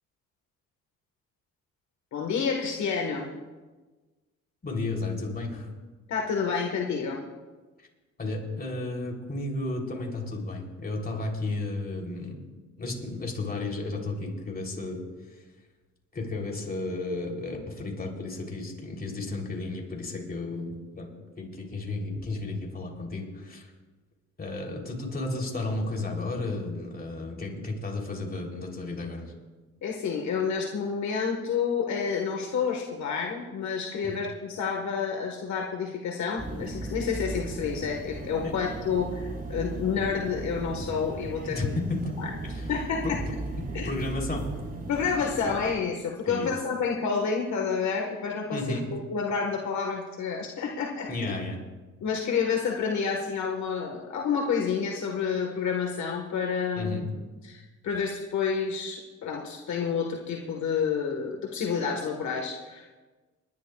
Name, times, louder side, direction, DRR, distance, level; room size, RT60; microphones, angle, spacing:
voice 1, 2.1-3.3 6.1-7.2 29.8-41.7 42.2-42.3 42.7-43.2 43.7-43.9 44.9-48.6 48.9-51.3 52.0-57.0 57.4-62.9, left 6 dB, 70° left, 1 dB, 1.6 m, -29 dB
voice 2, 4.6-5.7 8.2-12.4 12.8-15.0 16.1-21.1 21.4-23.7 24.4-29.3 34.0-34.2 38.4-38.5 41.5-42.1 42.4-42.7 43.0-43.2 43.6-44.5 46.3-46.5 48.5-48.9 51.1-51.6 56.8-57.1, left 2 dB, 30° left, 0 dB, 3.5 m, -33 dB
sound 1, 36.4-45.7, right 2 dB, 30° right, 2.2 m, -37 dB
30.0 x 11.0 x 2.4 m, 1.3 s
cardioid pair, 90°, 30 cm